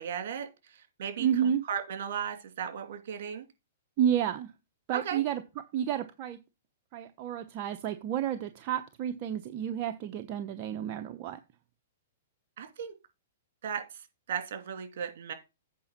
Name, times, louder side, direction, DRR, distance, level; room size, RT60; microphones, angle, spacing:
voice 1, 0.0-3.5 4.9-5.2 12.6-12.9 13.6-15.3, right 8 dB, 65° right, 2.7 m, -36 dB
voice 2, 1.2-1.6 4.0-4.5 4.9-5.4 5.7-6.4 6.9-11.4, right 9 dB, 40° right, 0.8 m, -30 dB
8.5 x 5.2 x 6.0 m
hypercardioid pair, 135°, 0 cm